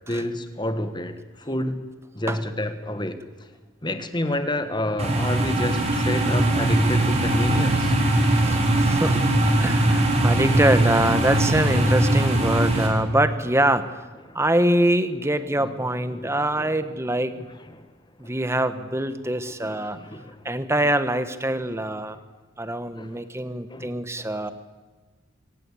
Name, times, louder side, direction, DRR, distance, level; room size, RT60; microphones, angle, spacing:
voice 1, 0.1-1.8 2.1-3.2 3.8-7.9 14.3-14.4 15.6-15.7 16.1-16.8 17.3-17.9 18.2-18.3 19.5-20.5 22.9-23.2 23.7-24.5, left 1 dB, 20° left, 9 dB, 1.6 m, -30 dB
sound 1, 5.0-12.9, right 1 dB, 30° right, 4.0 m, -21 dB
voice 2, 8.3-14.0 14.3-17.3 18.2-20.0 20.4-22.2 22.6-24.5, right 1 dB, 10° right, 11 dB, 1.2 m, -24 dB
24.5 x 18.0 x 8.5 m, 1.3 s
head